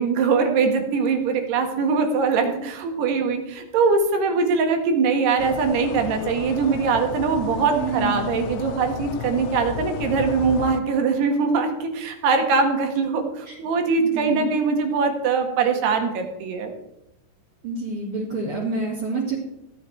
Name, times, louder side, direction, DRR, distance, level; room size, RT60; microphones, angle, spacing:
voice 1, 0.0-16.7, right 5 dB, 75° right, 4 dB, 3.7 m, -22 dB
sound 1, 5.4-10.8, left 11 dB, 80° left, 2.3 m, -33 dB
voice 2, 7.7-8.3 13.5-13.6 14.0-14.5 17.6-19.4, right 3 dB, 35° right, -5 dB, 3.1 m, -28 dB
15.0 x 9.9 x 4.6 m, 0.88 s
omnidirectional pair, 4.7 m